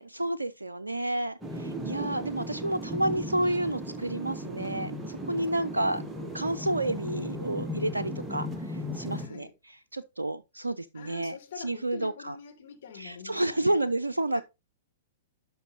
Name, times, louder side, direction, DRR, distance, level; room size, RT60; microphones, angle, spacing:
voice 1, 0.0-6.0 6.3-9.5 9.9-12.3 12.9-14.4, right 1 dB, 80° right, 0.4 m, -30 dB
sound 1, 1.4-9.3, equal, 10° right, 1.1 m, -36 dB
voice 2, 9.1-9.5 10.9-13.8 14.3-14.4, left 7 dB, 50° left, 2.1 m, -45 dB
11.0 x 5.7 x 2.7 m
figure-of-eight pair, 105°, 0 cm